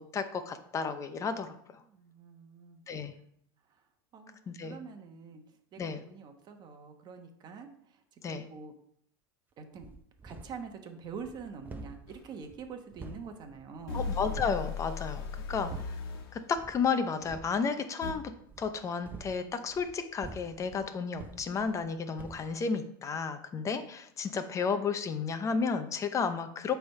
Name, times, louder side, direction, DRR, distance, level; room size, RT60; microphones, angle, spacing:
voice 1, 0.0-1.6 2.9-3.1 4.5-4.8 5.8-6.0 8.2-8.4 13.9-15.7 16.3-18.2 18.6-26.7, left 5 dB, 25° left, 9 dB, 0.7 m, -32 dB
voice 2, 1.8-2.8 4.1-4.4 4.6-5.4 5.7-8.7 9.6-9.9 10.2-14.1 15.5-15.8, right 5 dB, 35° right, 5 dB, 1.1 m, -45 dB
sound 1, 9.8-10.7 11.0-14.7 15.1-16.1 16.5-16.9 17.2-17.6 18.4-21.9 22.2-22.5, right 3 dB, 15° right, 0.7 m, -48 dB
sound 2, 12.1-12.2 13.9-16.4 18.0-18.1, left 5 dB, 80° left, 1.3 m, -37 dB
8.4 x 3.5 x 5.4 m, 0.70 s
supercardioid pair, 125°, 12 cm